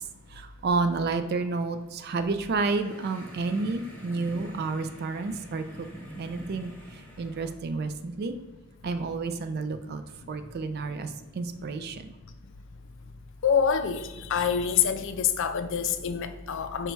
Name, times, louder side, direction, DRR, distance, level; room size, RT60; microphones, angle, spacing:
voice 1, 0.3-5.6 6.2-6.7 7.2-8.4 8.8-10.0 10.3-12.0, right 3 dB, 50° right, 9 dB, 0.3 m, -30 dB
sound 1, 2.5-7.5, right 1 dB, 5° left, 0.7 m, -45 dB
voice 2, 13.4-16.9, left 7 dB, 60° left, 9 dB, 0.4 m, -26 dB
5.2 x 2.2 x 4.5 m, 1.2 s
head